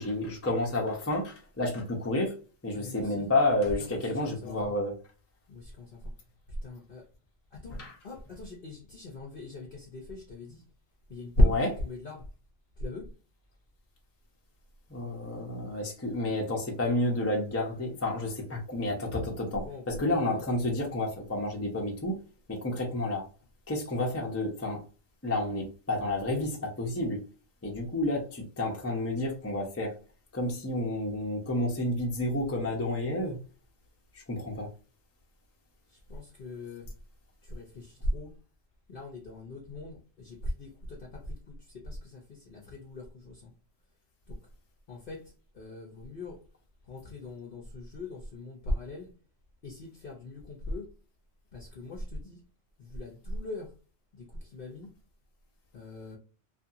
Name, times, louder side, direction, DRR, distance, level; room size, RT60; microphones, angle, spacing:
voice 1, 0.0-2.3 2.6-4.9 7.7-7.9 11.4-11.7 14.9-22.1 22.5-23.2 23.7-24.8 25.2-27.2 27.6-29.9 30.3-33.4 34.3-34.7, left 1 dB, 20° left, 0.4 m, -30 dB
voice 2, 2.7-3.3 3.8-4.7 5.5-6.0 6.6-7.0 7.5-7.8 8.0-10.6 11.1-12.2 12.8-13.1 19.6-20.4 36.1-36.9 37.4-38.3 38.9-41.4 41.7-43.5 44.3-44.4 44.9-46.4 46.9-49.1 49.6-50.9 51.5-52.4 52.8-53.7 54.2-54.9 55.7-56.2, left 1 dB, 55° left, 0.7 m, -36 dB
2.7 x 2.6 x 2.4 m
omnidirectional pair, 1.4 m